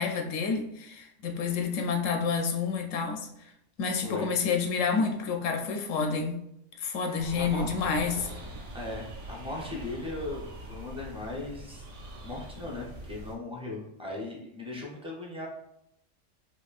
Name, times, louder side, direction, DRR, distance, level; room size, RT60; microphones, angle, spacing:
voice 1, 0.0-3.3 3.8-6.4 6.8-8.3, left 5 dB, 90° left, 4 dB, 1.0 m, -29 dB
voice 2, 7.0-7.7 8.7-11.9 12.2-15.5, left 2 dB, 5° right, -3 dB, 0.5 m, -38 dB
sound 1, 7.2-13.3, right 1 dB, 55° right, 1.0 m, -43 dB
4.2 x 2.8 x 2.4 m, 0.78 s
omnidirectional pair, 1.3 m